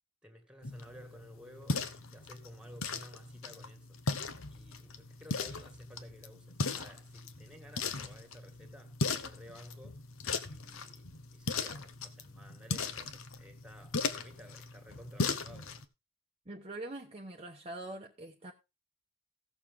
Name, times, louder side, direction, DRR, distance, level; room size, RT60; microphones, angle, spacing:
voice 1, 0.2-4.0 4.5-10.0 10.4-15.8, equal, 5° right, 2.1 m, -54 dB
sound 1, 0.6-15.8, left 4 dB, 65° left, 1.0 m, -38 dB
voice 2, 16.5-18.5, right 2 dB, 30° right, 1.0 m, -43 dB
16.5 x 6.8 x 3.7 m
head